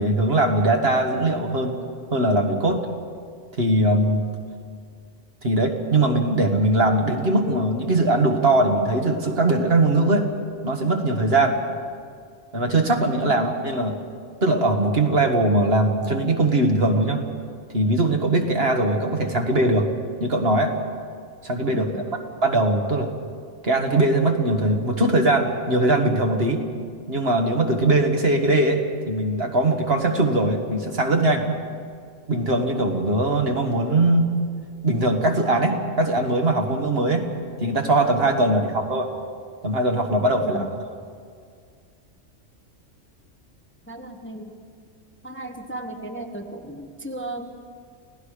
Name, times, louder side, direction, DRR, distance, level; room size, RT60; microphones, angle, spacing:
voice 1, 0.0-1.8 2.1-2.8 3.6-4.3 5.4-10.3 10.6-11.6 12.5-14.0 14.4-17.2 17.7-19.9 20.2-20.7 21.4-22.0 22.4-23.1 23.6-26.6 27.1-28.8 29.1-31.5 32.3-34.3 34.8-37.3 37.6-39.1 39.6-40.7, right 2 dB, 55° right, 3 dB, 1.9 m, -21 dB
voice 2, 21.7-22.1 40.4-40.7 43.9-44.5 45.2-47.5, right 1 dB, 10° left, 3 dB, 1.2 m, -35 dB
29.5 x 17.5 x 5.0 m, 2.1 s
omnidirectional pair, 1.3 m